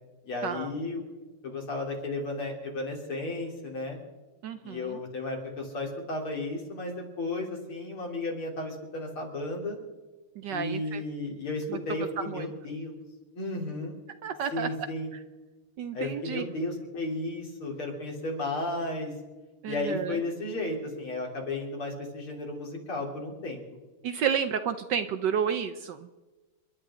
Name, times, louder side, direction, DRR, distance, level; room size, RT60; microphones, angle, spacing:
voice 1, 0.2-1.0 1.4-4.0 4.6-9.8 10.5-13.0 13.3-14.0 14.5-15.1 15.9-19.1 19.7-23.6, left 2 dB, 75° left, 0 dB, 4.3 m, -34 dB
voice 2, 4.4-5.0 10.4-11.0 11.7-11.8 12.3-12.5 14.2-14.7 15.8-16.5 19.6-20.2 24.0-26.1, right 8 dB, 65° right, 9 dB, 1.2 m, -31 dB
29.5 x 11.5 x 3.8 m, 1.2 s
omnidirectional pair, 2.4 m